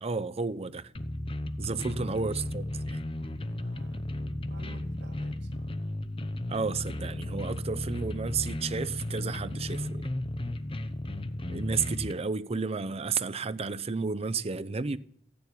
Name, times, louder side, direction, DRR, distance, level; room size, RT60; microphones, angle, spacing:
voice 1, 0.0-0.9 1.6-3.0 6.5-10.1 11.5-15.0, right 4 dB, 30° right, 0.6 m, -32 dB
sound 1, 0.9-12.1, left 1 dB, 30° left, 0.8 m, -34 dB
voice 2, 1.7-2.3 3.2-4.1 4.5-5.7, right 1 dB, 60° right, 2.0 m, -51 dB
14.5 x 6.9 x 9.9 m
head